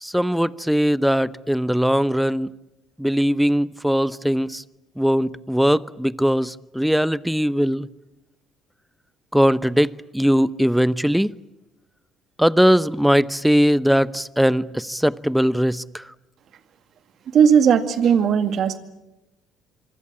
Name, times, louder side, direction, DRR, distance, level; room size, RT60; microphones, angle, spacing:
voice 1, 0.0-2.5 3.0-4.6 5.0-7.9 9.3-11.3 12.4-16.0, equal, ahead, 19 dB, 0.9 m, -20 dB
voice 2, 17.3-18.8, right 7 dB, 55° right, 10 dB, 2.1 m, -17 dB
26.0 x 25.0 x 8.7 m, 0.96 s
hypercardioid pair, 55°, 0 cm